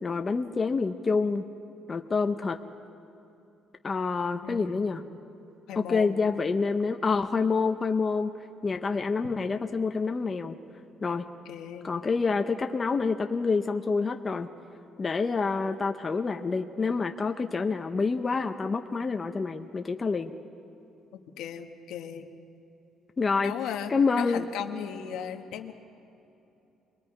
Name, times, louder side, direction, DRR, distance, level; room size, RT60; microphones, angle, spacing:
voice 1, 0.0-1.4 1.9-2.6 3.8-5.0 5.9-8.3 8.6-10.6 11.0-11.3 11.8-14.5 15.0-20.3 23.2-23.5 23.9-24.4, left 4 dB, 25° left, 5 dB, 0.7 m, -27 dB
voice 2, 4.4-4.9 5.7-6.2 11.4-11.9 21.1-22.3 23.4-25.7, left 9 dB, 85° left, 5 dB, 1.2 m, -37 dB
27.0 x 21.0 x 4.8 m, 2.9 s
cardioid pair, 155°, 0 cm